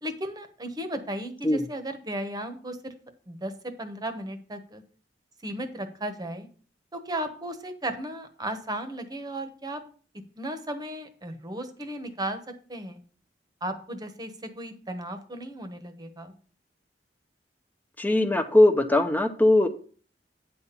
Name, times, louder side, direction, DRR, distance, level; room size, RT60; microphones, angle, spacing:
voice 1, 0.0-2.9 3.3-4.8 5.4-6.5 6.9-9.8 10.4-12.4 12.7-13.0 13.6-16.3, right 1 dB, 25° right, 7 dB, 1.1 m, -35 dB
voice 2, 18.0-19.7, left 1 dB, 10° left, 7 dB, 0.7 m, -20 dB
9.3 x 4.2 x 6.8 m, 0.42 s
head